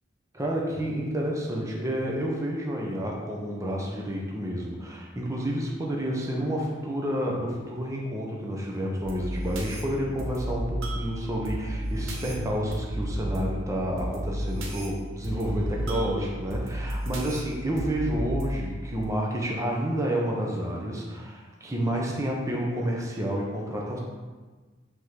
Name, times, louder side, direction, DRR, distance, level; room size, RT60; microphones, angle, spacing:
voice 1, 0.3-24.0, equal, 15° right, -2 dB, 0.9 m, -30 dB
sound 1, 9.0-19.0, right 1 dB, 70° right, 1.1 m, -33 dB
6.4 x 3.7 x 5.7 m, 1.4 s
head